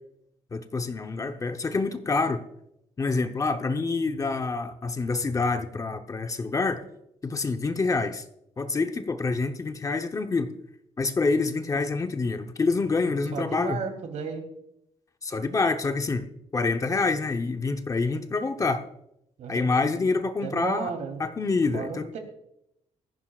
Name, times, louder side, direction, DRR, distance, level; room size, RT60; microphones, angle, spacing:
voice 1, 0.5-2.4 3.0-6.8 7.2-8.2 8.6-10.5 11.0-13.8 15.2-18.8 19.5-20.9 21.2-22.1, left 3 dB, 30° left, 0.8 m, -27 dB
voice 2, 13.3-14.4 19.4-20.1 20.4-21.2 21.7-22.2, right 5 dB, 90° right, 2.9 m, -34 dB
17.5 x 14.0 x 2.4 m
wide cardioid pair, 145°, 12 cm